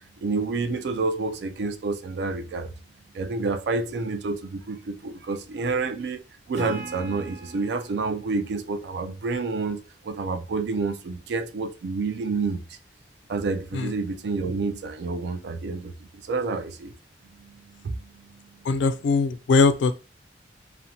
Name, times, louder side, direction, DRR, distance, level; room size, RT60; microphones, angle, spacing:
voice 1, 0.2-2.7 3.1-6.2 6.5-12.6 13.3-15.9 16.3-16.9 17.8-18.0, right 3 dB, 70° right, 0.3 m, -28 dB
Acoustic guitar / Strum, 6.5-10.0, right 3 dB, 40° right, 1.0 m, -41 dB
voice 2, 18.7-19.9, left 4 dB, 85° left, 0.3 m, -21 dB
2.8 x 2.1 x 2.6 m
head